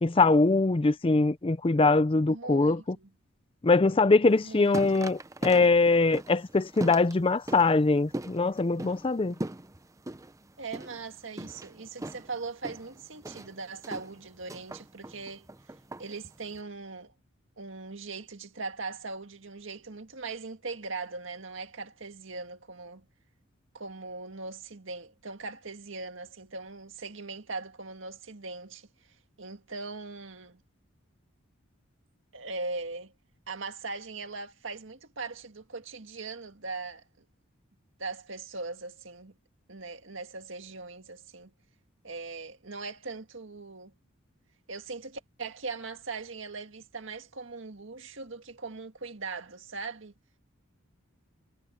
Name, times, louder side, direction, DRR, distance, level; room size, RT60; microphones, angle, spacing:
voice 1, 0.0-3.0 3.6-9.3, left 3 dB, 25° left, 0.5 m, -23 dB
voice 2, 2.3-3.1 4.4-4.8 10.6-15.5 16.0-17.1 17.6-23.1 23.7-28.9 29.4-30.6 32.3-33.1 33.5-37.2 38.0-39.3 39.7-41.5 42.0-43.9 44.7-50.1, right 3 dB, 65° right, 2.0 m, -40 dB
sound 1, 4.3-16.6, right 1 dB, 15° right, 0.6 m, -41 dB
head